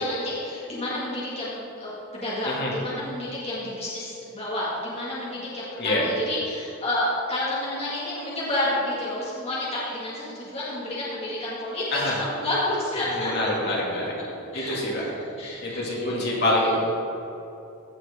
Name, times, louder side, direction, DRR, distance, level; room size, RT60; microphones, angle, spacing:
voice 1, 0.0-13.3 14.5-16.8, left 1 dB, 30° left, -7 dB, 2.0 m, -30 dB
voice 2, 13.0-14.0 14.5-15.1 15.6-16.8, left 1 dB, 50° left, -4 dB, 2.2 m, -26 dB
16.0 x 6.2 x 3.6 m, 2.9 s
head